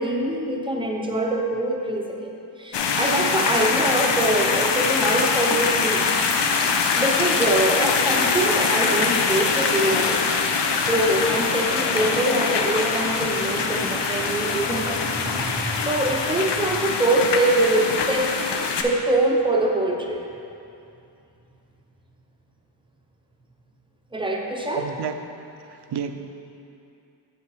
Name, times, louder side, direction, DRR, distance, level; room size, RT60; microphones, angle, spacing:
voice 1, 0.0-2.3 2.6-6.0 6.9-10.5 10.8-18.4 18.8-20.2 24.1-24.8, right 1 dB, 10° right, 0 dB, 0.6 m, -24 dB
sound 1, 2.7-18.8, left 5 dB, 80° left, 0.6 m, -23 dB
voice 2, 24.7-25.2 25.7-26.1, right 8 dB, 70° right, 8 dB, 0.5 m, -30 dB
8.4 x 5.0 x 4.7 m, 2.7 s
wide cardioid pair, 170°, 42 cm